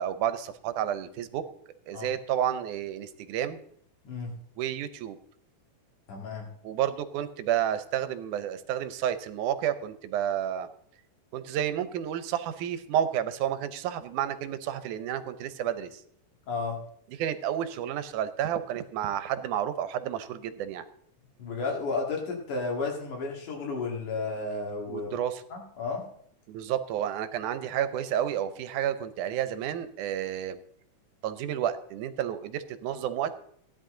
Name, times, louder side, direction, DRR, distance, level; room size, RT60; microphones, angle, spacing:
voice 1, 0.0-1.4 1.9-3.6 4.6-5.2 6.6-10.7 11.3-16.0 17.2-20.9 24.9-25.4 26.5-30.6 31.2-33.3, right 10 dB, 80° right, 12 dB, 2.2 m, -30 dB
voice 2, 6.1-6.5 16.5-16.8 21.4-25.1 25.5-26.1, left 3 dB, 80° left, 0 dB, 3.8 m, -32 dB
15.5 x 10.5 x 3.8 m, 0.64 s
omnidirectional pair, 3.5 m